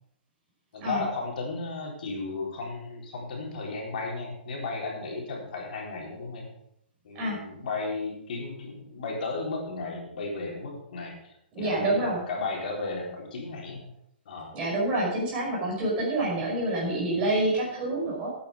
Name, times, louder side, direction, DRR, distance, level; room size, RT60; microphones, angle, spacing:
voice 1, 0.7-6.5 7.0-13.8 14.3-14.5, left 3 dB, 50° left, -2 dB, 4.0 m, -34 dB
voice 2, 11.5-12.2 14.5-18.3, right 2 dB, 20° right, -4 dB, 5.3 m, -27 dB
12.0 x 9.0 x 5.1 m, 0.76 s
hypercardioid pair, 165°, 6 cm